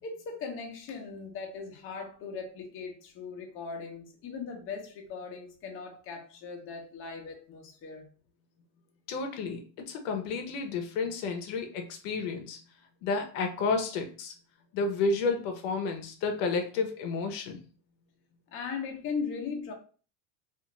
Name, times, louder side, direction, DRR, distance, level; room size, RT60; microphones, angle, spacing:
voice 1, 0.0-8.1 18.5-19.7, left 5 dB, 35° left, 0.7 m, -38 dB
voice 2, 9.1-12.6 13.0-14.3 14.7-17.6, left 4 dB, 70° left, 0.7 m, -31 dB
2.5 x 2.4 x 2.9 m
cardioid pair, 145°, 39 cm